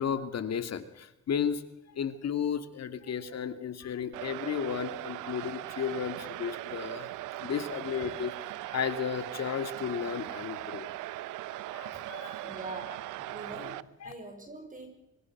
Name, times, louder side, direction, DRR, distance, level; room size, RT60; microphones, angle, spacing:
voice 1, 0.0-1.6 2.0-7.1 7.4-8.3 8.7-10.9 11.7-12.5 14.0-14.1, left 7 dB, 60° left, 10 dB, 2.4 m, -33 dB
sound 1, 4.1-13.8, right 16 dB, 90° right, 0.8 m, -39 dB
voice 2, 12.4-14.9, right 2 dB, 25° right, 3 dB, 6.6 m, -44 dB
25.5 x 25.0 x 6.1 m, 0.91 s
cardioid pair, 90°, 30 cm